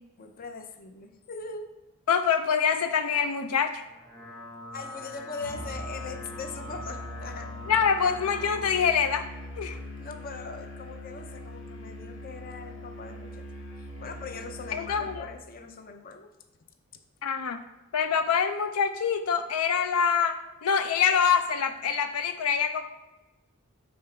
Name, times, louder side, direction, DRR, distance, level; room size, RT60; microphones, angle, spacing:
voice 1, 0.2-1.7 4.7-7.5 10.0-13.5 13.8-16.3, left 4 dB, 40° left, 6 dB, 0.6 m, -41 dB
voice 2, 2.1-3.8 7.7-9.3 9.6-9.8 14.7-15.3 17.2-17.6 17.9-22.8, left 6 dB, 90° left, 9 dB, 0.4 m, -25 dB
sound 1, 3.8-8.8, left 2 dB, ahead, 0.8 m, -43 dB
Musical instrument, 5.4-15.3, left 1 dB, 55° left, 1.3 m, -41 dB
5.3 x 3.8 x 5.7 m, 1.1 s
head